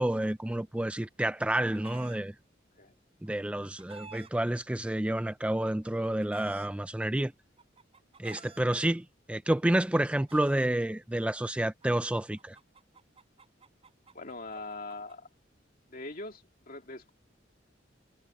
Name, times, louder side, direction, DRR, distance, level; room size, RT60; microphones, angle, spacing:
voice 1, 0.0-2.3 3.2-7.3 8.2-12.6, right 1 dB, 5° right, 0.3 m, -29 dB
Chicken rooster, 1.0-2.2 3.3-4.3 5.3-6.7 7.6-8.6 9.6-10.7 11.8-15.1, right 5 dB, 30° right, 5.6 m, -52 dB
voice 2, 14.1-15.3 15.9-17.1, left 2 dB, 50° left, 2.5 m, -42 dB
head